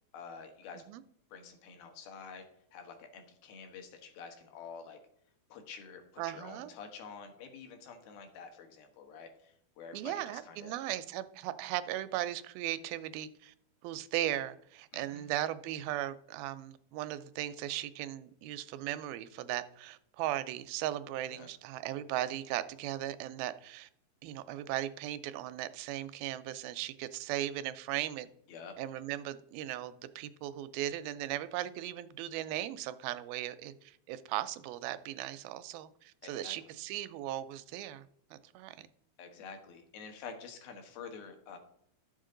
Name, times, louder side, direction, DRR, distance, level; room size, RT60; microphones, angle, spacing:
voice 1, 0.1-0.8 1.3-2.5 2.7-5.0 5.5-6.0 6.3-10.8 14.9-15.3 21.3-21.5 28.5-28.8 36.2-36.6 39.2-41.6, left 5 dB, 85° left, 3.2 m, -48 dB
voice 2, 6.2-6.7 9.9-13.5 13.8-23.9 24.2-28.3 28.8-38.1 38.3-38.9, right 13 dB, 85° right, 2.4 m, -37 dB
11.5 x 7.3 x 3.8 m
omnidirectional pair, 4.1 m